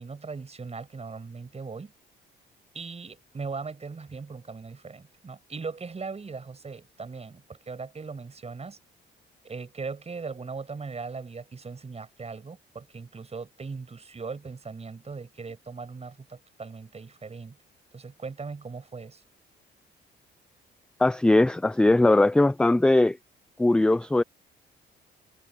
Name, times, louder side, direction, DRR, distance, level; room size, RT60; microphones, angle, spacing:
voice 1, 0.0-1.9 2.7-8.8 9.4-17.6 17.9-19.2, right 4 dB, 30° right, 7.2 m, -39 dB
voice 2, 21.0-23.2 23.6-24.2, left 2 dB, 5° left, 0.3 m, -20 dB
cardioid pair, 90°, 20 cm